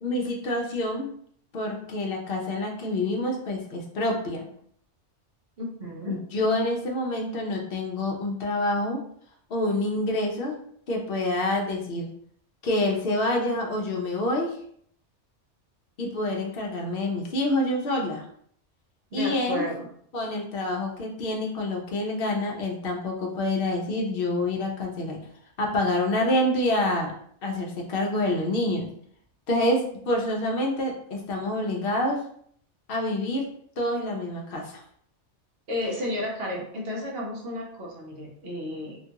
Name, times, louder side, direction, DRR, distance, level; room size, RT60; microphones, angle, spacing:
voice 1, 0.0-1.1 1.5-4.5 6.1-9.0 9.5-10.6 10.9-12.1 12.6-14.6 16.0-18.2 19.1-19.7 20.1-25.2 25.6-27.1 27.4-28.9 29.5-32.2 32.9-33.5 33.8-34.8, left 1 dB, 60° left, 1 dB, 0.8 m, -27 dB
voice 2, 5.6-6.2 19.1-19.9 35.7-39.0, left 1 dB, 60° right, -2 dB, 1.0 m, -32 dB
2.9 x 2.3 x 2.8 m, 0.64 s
omnidirectional pair, 1.2 m